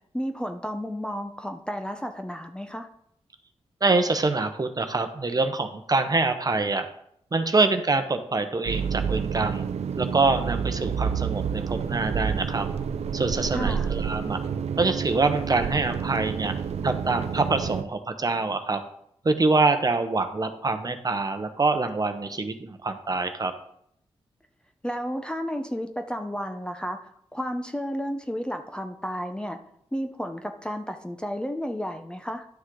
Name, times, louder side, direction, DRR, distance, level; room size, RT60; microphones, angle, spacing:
voice 1, 0.1-2.9 13.5-13.9 24.8-29.6 29.9-32.5, equal, 10° left, 6 dB, 0.7 m, -32 dB
voice 2, 3.8-6.9 7.3-9.7 10.0-12.7 13.1-14.4 14.8-16.5 16.8-18.8 19.2-23.5, right 3 dB, 35° right, 7 dB, 0.9 m, -25 dB
sound 1, 8.7-17.8, right 7 dB, 75° right, 0.5 m, -29 dB
11.5 x 6.3 x 3.8 m, 0.71 s
cardioid pair, 75°, 11 cm